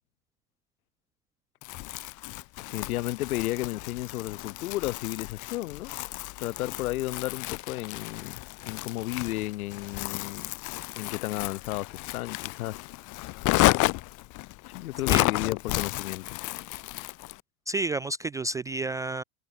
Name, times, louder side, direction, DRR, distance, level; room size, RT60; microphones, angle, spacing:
Crumpling crinkling, 1.6-17.4, left 21 dB, 40° left, 2.2 m, -32 dB
voice 1, 2.6-5.9 6.4-8.4 8.6-10.5 11.0-12.9 14.7-16.2, left 17 dB, 70° left, 1.4 m, -33 dB
voice 2, 17.7-19.2, right 2 dB, 10° right, 0.3 m, -30 dB
hypercardioid pair, 125°, 44 cm